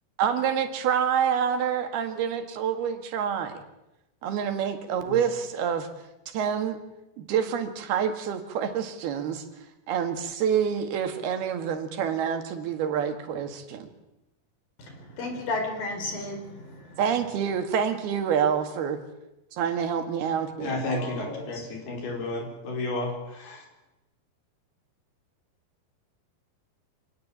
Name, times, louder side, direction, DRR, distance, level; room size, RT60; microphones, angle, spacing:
voice 1, 0.2-3.5 4.2-5.9 6.3-6.8 7.2-9.4 9.9-13.9 17.0-19.0 19.5-20.8, right 8 dB, 85° right, 7 dB, 3.9 m, -27 dB
voice 2, 14.8-17.0 20.9-21.8, left 2 dB, 65° left, 5 dB, 6.0 m, -34 dB
voice 3, 20.6-23.1 23.4-23.6, left 2 dB, 80° left, 2 dB, 6.8 m, -31 dB
26.0 x 18.5 x 8.7 m, 0.94 s
omnidirectional pair, 4.4 m